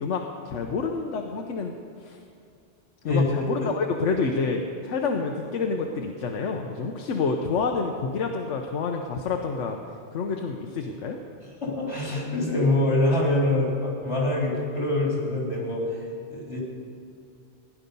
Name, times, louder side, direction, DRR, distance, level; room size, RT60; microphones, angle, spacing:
voice 1, 0.0-1.7 2.0-2.2 3.0-9.8 10.1-11.2, left 4 dB, 85° left, 3 dB, 1.2 m, -28 dB
voice 2, 3.0-3.7 11.6-16.0 16.3-16.6, left 2 dB, 65° left, -4 dB, 3.8 m, -25 dB
16.5 x 10.0 x 5.4 m, 2.5 s
omnidirectional pair, 1.2 m